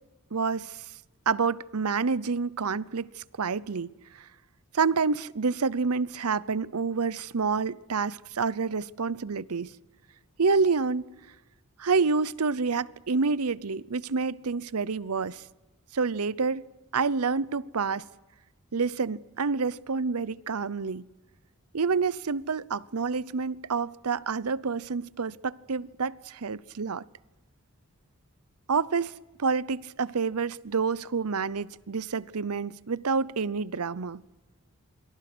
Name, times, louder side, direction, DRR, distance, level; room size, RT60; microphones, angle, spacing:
voice 1, 0.3-0.8 1.3-4.2 4.7-9.7 10.4-11.0 11.8-15.4 15.9-16.6 16.9-18.0 18.7-21.1 21.7-27.0 28.7-29.1 29.4-34.2, right 5 dB, 85° right, 0.7 m, -28 dB
28.0 x 23.5 x 6.2 m
head